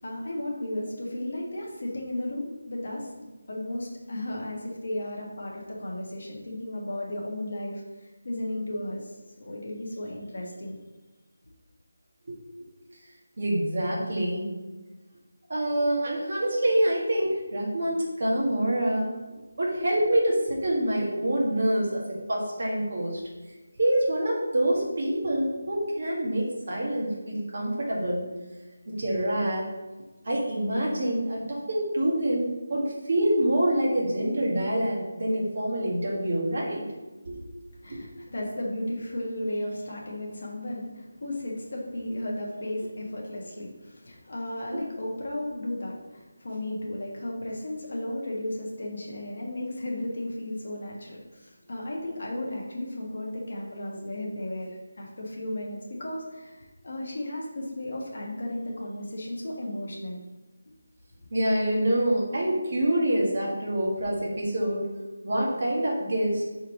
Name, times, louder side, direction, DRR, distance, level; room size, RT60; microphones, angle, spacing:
voice 1, 0.0-9.1 9.4-10.8 37.8-60.2, left 1 dB, 45° left, -2 dB, 1.5 m, -34 dB
voice 2, 13.4-14.5 15.5-19.1 19.6-22.0 22.3-23.2 23.8-28.3 28.9-29.7 30.3-36.8 37.3-37.4 37.9-38.0 44.7-44.8 61.3-64.8 65.2-66.5, right 1 dB, 35° right, -3 dB, 1.7 m, -26 dB
5.4 x 4.5 x 4.9 m, 1.2 s
figure-of-eight pair, 180°, 0 cm